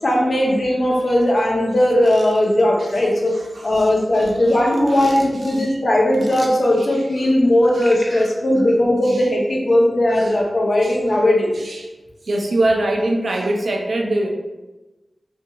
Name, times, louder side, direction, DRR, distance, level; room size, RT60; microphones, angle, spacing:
voice 1, 0.0-3.3 3.6-11.5, left 1 dB, 55° left, -1 dB, 0.6 m, -18 dB
sound 1, 2.0-2.6 3.0-3.1 3.4-5.5 6.1-6.5 7.8-8.1, equal, 15° right, 0.6 m, -36 dB
voice 2, 7.7-8.3 9.1-9.2 10.2-10.3 10.8-10.9 11.6-11.9 12.2-14.3, right 1 dB, 75° right, 1 dB, 0.4 m, -23 dB
2.7 x 2.6 x 2.3 m, 1.1 s
wide cardioid pair, 60°, 0 cm